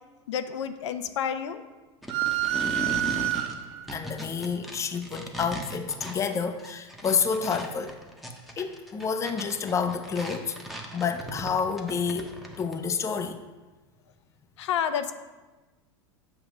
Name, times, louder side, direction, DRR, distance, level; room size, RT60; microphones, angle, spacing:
voice 1, 0.3-1.6 14.6-15.1, left 8 dB, 80° left, 9 dB, 0.5 m, -29 dB
sound 1, 2.0-12.7, right 1 dB, ahead, 0.8 m, -38 dB
sound 2, 2.1-3.9, right 13 dB, 50° right, 0.5 m, -28 dB
voice 2, 3.9-7.9 8.6-10.6 10.9-12.3 12.6-13.4, left 6 dB, 20° left, 8 dB, 0.5 m, -29 dB
7.4 x 2.9 x 6.1 m, 1.2 s
hypercardioid pair, 105°, 15 cm